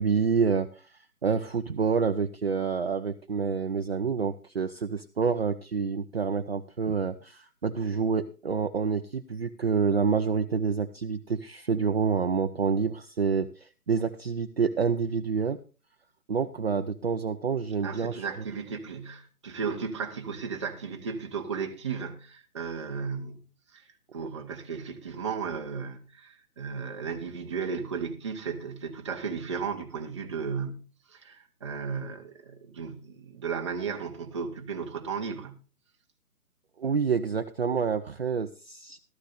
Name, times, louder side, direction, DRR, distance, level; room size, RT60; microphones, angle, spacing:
voice 1, 0.0-15.6 16.3-18.2 36.8-39.0, right 5 dB, 45° right, 0.5 m, -28 dB
voice 2, 17.8-23.5 23.7-23.8 24.1-35.6, right 6 dB, 20° right, 0.8 m, -35 dB
16.0 x 13.5 x 2.5 m
figure-of-eight pair, 150°, 45 cm